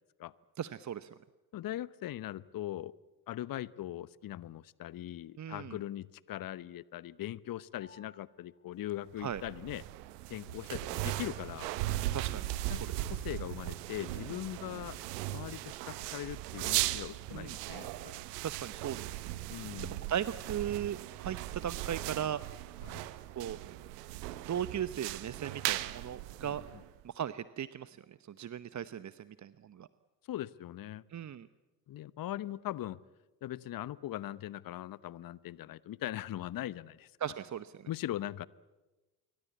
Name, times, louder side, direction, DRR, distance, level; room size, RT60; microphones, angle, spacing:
voice 1, 0.6-1.1 5.4-5.8 9.2-9.4 12.1-12.4 17.3-17.6 18.4-19.2 20.1-22.4 23.3-23.6 24.5-26.6 27.0-29.9 31.1-31.5 37.2-37.9, right 9 dB, 35° right, 15 dB, 0.9 m, -37 dB
voice 2, 1.5-2.9 3.3-9.8 10.3-11.7 12.7-15.0 15.3-18.1 19.5-20.0 22.8-23.0 26.4-26.6 30.3-31.0 31.9-33.0 33.4-37.1 37.9-38.5, left 13 dB, 45° left, 20 dB, 0.9 m, -40 dB
Piano, 7.8-17.4, left 2 dB, 25° left, 6.1 m, -69 dB
sound 1, 9.2-27.0, right 16 dB, 75° right, 1.1 m, -38 dB
28.0 x 23.0 x 8.4 m, 1.1 s
hypercardioid pair, 50°, 48 cm